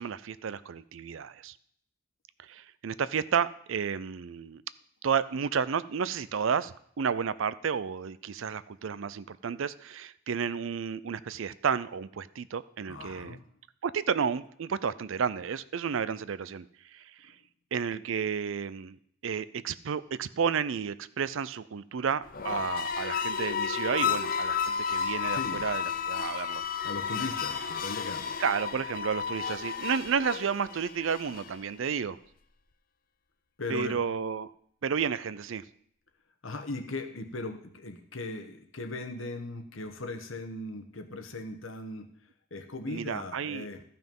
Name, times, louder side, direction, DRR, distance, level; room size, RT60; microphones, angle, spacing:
voice 1, 0.0-1.6 2.4-4.6 5.0-13.4 13.8-16.7 16.9-17.3 17.7-19.0 19.2-26.6 28.4-32.2 33.7-34.5 34.8-35.6 42.9-43.7, right 6 dB, 65° right, 17 dB, 0.4 m, -31 dB
voice 2, 12.9-13.4 24.0-24.2 25.3-25.7 26.3-26.4 26.8-28.4 33.6-34.0 36.4-42.1 42.5-43.8, left 2 dB, 65° left, 6 dB, 1.2 m, -38 dB
sound 1, 22.2-31.6, left 7 dB, 40° left, 0.6 m, -32 dB
13.5 x 5.8 x 5.4 m, 0.65 s
head